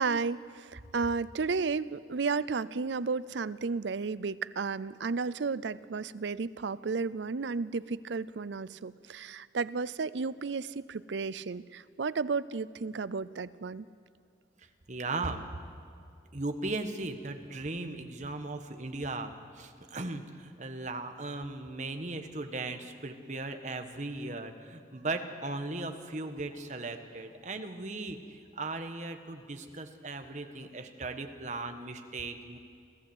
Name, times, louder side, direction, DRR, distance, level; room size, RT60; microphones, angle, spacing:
voice 1, 0.0-13.8, right 4 dB, 85° right, 18 dB, 0.5 m, -33 dB
voice 2, 14.9-15.4 16.3-32.6, right 2 dB, 40° right, 7 dB, 1.4 m, -37 dB
26.5 x 14.5 x 8.0 m, 2.3 s
head